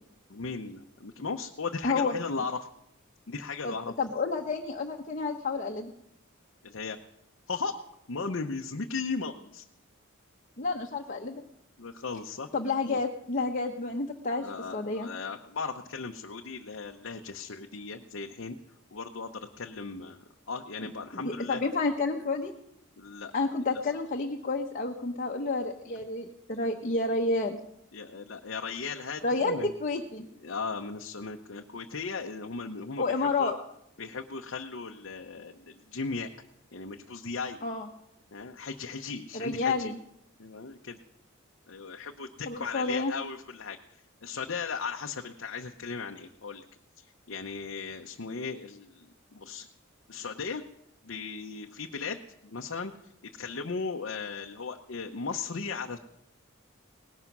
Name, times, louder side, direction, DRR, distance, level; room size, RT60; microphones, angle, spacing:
voice 1, 0.3-2.6 3.3-3.9 6.6-7.0 7.5-7.7 8.1-9.6 11.8-12.5 12.9-13.0 14.4-18.5 18.9-21.6 23.0-23.5 27.9-29.7 30.4-33.5 34.0-36.3 36.7-37.6 38.3-39.9 40.4-41.0 41.7-43.8 44.2-46.6 47.3-49.7 50.1-50.6 51.0-52.9 53.4-56.0, left 4 dB, 65° left, 2 dB, 0.8 m, -37 dB
voice 2, 1.8-2.2 3.6-5.9 10.6-11.4 12.5-15.1 21.1-22.5 23.3-27.6 29.2-30.3 33.0-33.5 37.6-37.9 39.3-40.0 42.5-43.1, left 3 dB, 40° left, 1 dB, 1.0 m, -30 dB
18.5 x 11.5 x 6.0 m, 0.77 s
head